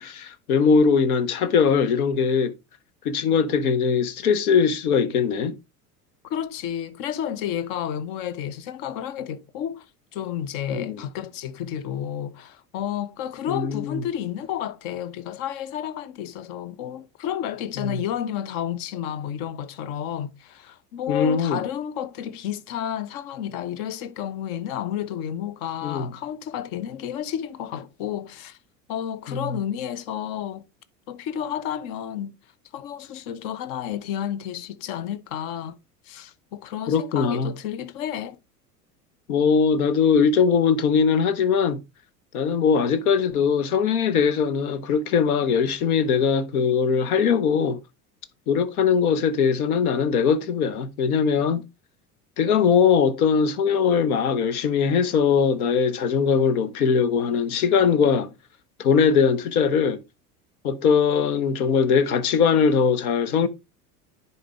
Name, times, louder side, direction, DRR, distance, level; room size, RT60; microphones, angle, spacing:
voice 1, 0.0-2.5 3.0-5.5 10.7-11.0 13.5-14.0 17.8-18.0 21.1-21.6 25.8-26.1 29.3-29.4 36.9-37.5 39.3-41.8 42.3-47.8 48.5-51.6 52.4-58.3 58.8-60.0 60.6-63.5, left 6 dB, 65° left, 1.1 m, -21 dB
voice 2, 6.2-9.9 10.1-28.6 28.9-30.7 31.1-32.3 32.7-35.8 36.1-38.4, left 10 dB, 45° left, 0.8 m, -31 dB
10.0 x 4.4 x 3.5 m
figure-of-eight pair, 75°, 48 cm